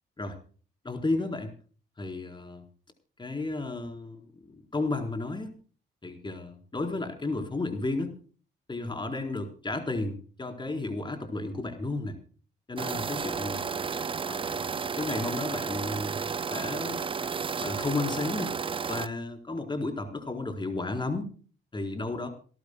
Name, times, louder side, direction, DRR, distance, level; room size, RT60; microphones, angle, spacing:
voice 1, 0.8-1.5 2.0-2.7 3.2-5.5 6.0-8.2 8.7-12.2 12.7-13.8 14.3-17.0 17.6-18.6 18.9-21.3 21.7-22.3, left 2 dB, 25° left, 5 dB, 4.2 m, -33 dB
sound 1, 12.8-19.1, right 5 dB, 25° right, 0.5 m, -32 dB
28.0 x 12.0 x 2.3 m, 0.40 s
cardioid pair, 90°, 20 cm